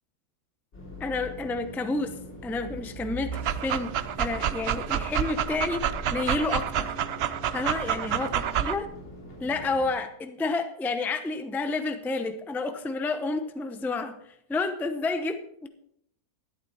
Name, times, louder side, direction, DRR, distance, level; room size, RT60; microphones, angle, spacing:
sound 1, 0.7-9.9, equal, 45° left, 3.8 m, -41 dB
voice 1, 1.0-2.1 2.4-5.8 6.1-7.0 7.5-8.9 9.4-14.2 14.5-15.7, left 3 dB, ahead, 8 dB, 0.4 m, -30 dB
Dog, 3.3-8.8, right 10 dB, 70° right, 0.6 m, -29 dB
12.0 x 11.0 x 4.3 m, 0.73 s
omnidirectional pair, 1.7 m